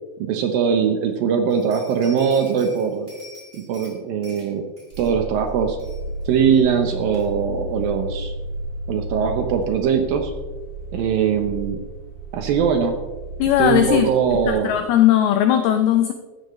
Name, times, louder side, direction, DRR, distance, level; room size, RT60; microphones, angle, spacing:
voice 1, 0.2-3.1 3.5-4.6 5.0-5.8 6.3-8.3 8.9-10.3 10.9-11.8 12.3-13.0 13.6-14.8, right 7 dB, 80° right, 5 dB, 2.1 m, -21 dB
sound 1, 1.5-3.9 4.2-4.5 4.8-5.1 5.5-5.6 5.8-6.2 6.5-6.6 7.1-7.2, left 1 dB, 10° right, 4.3 m, -45 dB
sound 2, 4.9-14.8, right 1 dB, 55° right, 3.2 m, -33 dB
voice 2, 13.4-16.1, left 11 dB, 85° left, 7 dB, 2.2 m, -18 dB
14.5 x 13.5 x 3.2 m, 1.2 s
omnidirectional pair, 5.2 m